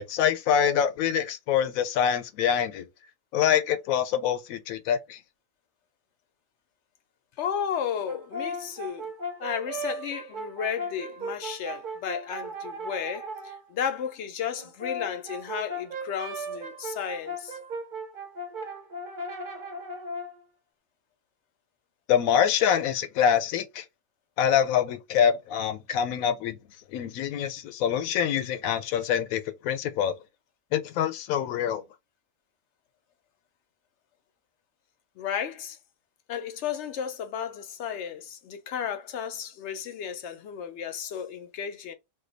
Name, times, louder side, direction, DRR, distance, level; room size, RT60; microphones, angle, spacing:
voice 1, 0.0-2.8 3.3-5.2 22.1-23.8 24.4-26.6 26.9-30.1 30.7-31.8, left 9 dB, 90° left, 1.0 m, -25 dB
voice 2, 7.4-9.1 9.4-17.6 35.2-35.8 36.3-41.9, left 8 dB, 65° left, 0.8 m, -33 dB
Brass instrument, 8.0-13.6 14.6-20.4, right 1 dB, 50° right, 0.6 m, -37 dB
2.6 x 2.2 x 3.8 m
omnidirectional pair, 1.4 m